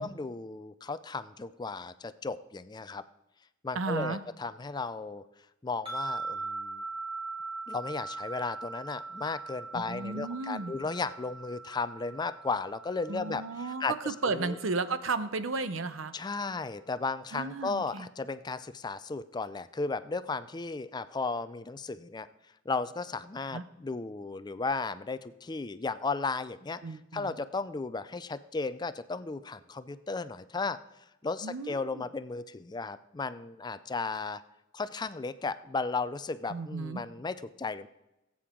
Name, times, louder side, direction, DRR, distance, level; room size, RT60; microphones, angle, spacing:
voice 1, 0.0-3.0 3.6-5.2 5.6-6.8 7.7-14.6 16.1-22.3 22.7-30.8 31.2-34.4 34.7-37.9, left 4 dB, 20° left, 14 dB, 0.4 m, -35 dB
voice 2, 3.7-4.2 9.7-10.7 13.1-16.1 17.3-18.1 23.5-23.6 26.8-27.3 31.4-32.0 36.5-37.0, right 3 dB, 85° right, 12 dB, 0.8 m, -34 dB
sound 1, 5.9-15.1, right 3 dB, 30° right, 2.9 m, -41 dB
18.0 x 8.6 x 3.7 m, 0.95 s
head